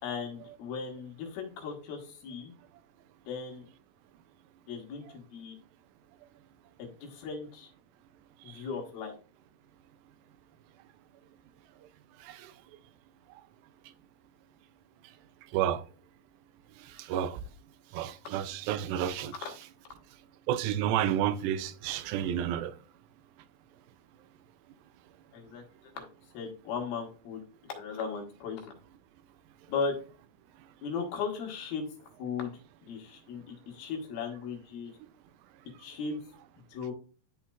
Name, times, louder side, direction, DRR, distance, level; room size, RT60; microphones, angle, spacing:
voice 1, 0.0-2.5 3.3-3.7 4.7-5.6 6.8-7.7 8.4-9.1 19.5-19.6 25.3-25.6 26.0-26.1 26.3-27.4 27.7-28.7 29.7-30.0 30.8-31.9 32.2-34.9 35.8-36.2 36.7-36.9, left 5 dB, 80° left, 3.5 m, -37 dB
voice 2, 15.5-15.8 16.9-17.4 17.9-19.3 20.5-22.7, right 10 dB, 85° right, 2.3 m, -30 dB
12.0 x 4.2 x 2.3 m
omnidirectional pair, 4.3 m